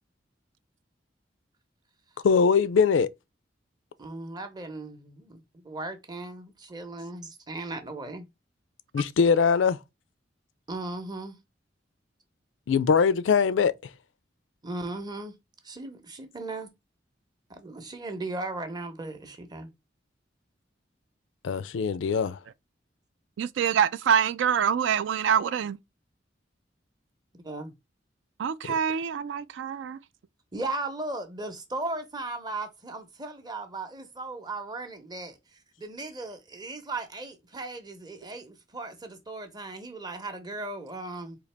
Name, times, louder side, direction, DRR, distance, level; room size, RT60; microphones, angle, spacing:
voice 1, 2.2-3.1 8.9-9.8 12.7-13.7 21.4-22.4, left 6 dB, 80° left, 0.4 m, -22 dB
voice 2, 4.0-8.3 10.7-11.3 14.6-15.3 15.6-16.7 17.5-19.7 27.4-27.7 30.5-35.4 35.8-41.4, right 2 dB, 25° right, 0.7 m, -37 dB
voice 3, 23.4-25.8 28.4-30.0, right 8 dB, 70° right, 0.3 m, -25 dB
3.9 x 2.8 x 3.2 m
head